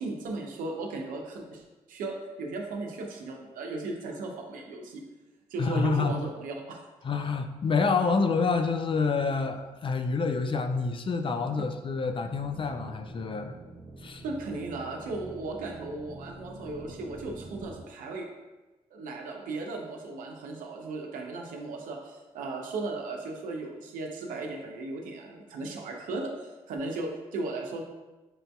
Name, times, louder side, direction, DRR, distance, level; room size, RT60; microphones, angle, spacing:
voice 1, 0.0-1.6 1.9-5.0 5.5-6.8 14.2-18.3 18.9-27.8, right 3 dB, 75° right, 1 dB, 0.7 m, -36 dB
voice 2, 5.6-6.2 7.0-13.5 14.0-14.2, left 4 dB, 40° left, 7 dB, 0.4 m, -27 dB
sound 1, 12.3-17.8, right 2 dB, 35° right, 0.6 m, -46 dB
5.9 x 2.6 x 2.2 m, 1.1 s
supercardioid pair, 55°, 14 cm